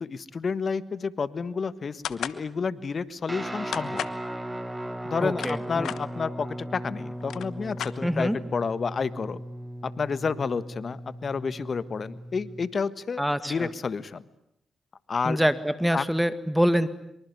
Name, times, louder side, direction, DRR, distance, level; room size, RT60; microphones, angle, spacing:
voice 1, 0.0-4.0 5.0-9.4 9.8-14.2 15.1-15.4 15.9-16.1, left 5 dB, 55° left, 16 dB, 1.4 m, -30 dB
sound 1, 2.0-2.4 3.7-4.2 5.1-6.0 6.8-6.9 7.2-8.4, left 9 dB, 80° left, 1.1 m, -34 dB
Guitar, 3.3-12.7, right 1 dB, 20° right, 4.6 m, -37 dB
voice 2, 5.2-5.9 8.0-8.4 13.2-13.7 15.3-16.9, equal, 5° right, 13 dB, 2.0 m, -25 dB
25.0 x 24.0 x 9.7 m, 0.77 s
supercardioid pair, 40°, 0 cm